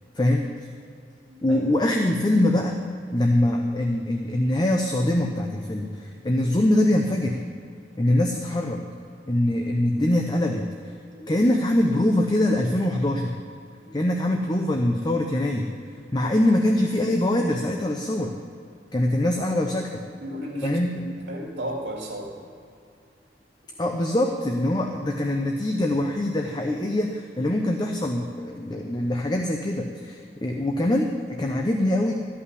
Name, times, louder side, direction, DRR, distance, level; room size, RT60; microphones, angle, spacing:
voice 1, 0.2-0.5 1.4-2.8 3.1-7.4 8.0-8.8 9.3-10.7 11.3-13.4 13.9-15.7 16.1-18.3 18.9-20.0 20.6-21.1 23.8-32.1, left 1 dB, 25° left, 2 dB, 0.7 m, -23 dB
voice 2, 1.3-1.6 4.9-5.1 6.1-6.3 8.0-8.1 11.1-11.4 13.8-14.1 20.2-22.4, equal, 80° right, -1 dB, 2.3 m, -36 dB
14.0 x 5.6 x 9.6 m, 2.4 s
head